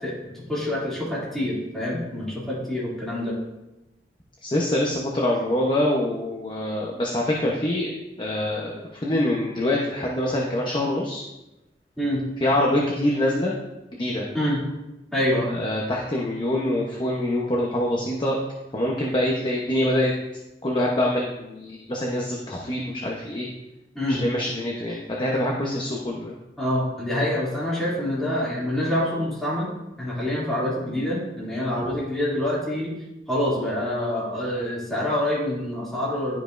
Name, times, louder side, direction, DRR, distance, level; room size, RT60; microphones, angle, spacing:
voice 1, 0.0-3.3 12.0-12.2 14.3-14.6 15.1-15.5 23.9-24.2 26.6-29.7 30.0-32.9 33.3-36.4, left 1 dB, ahead, -8 dB, 2.5 m, -26 dB
voice 2, 4.4-7.9 8.2-11.2 12.4-13.5 14.0-14.3 15.5-18.4 18.7-20.1 20.6-23.5 24.1-26.4, left 1 dB, 30° left, -2 dB, 0.8 m, -25 dB
12.0 x 5.2 x 2.5 m, 0.97 s
head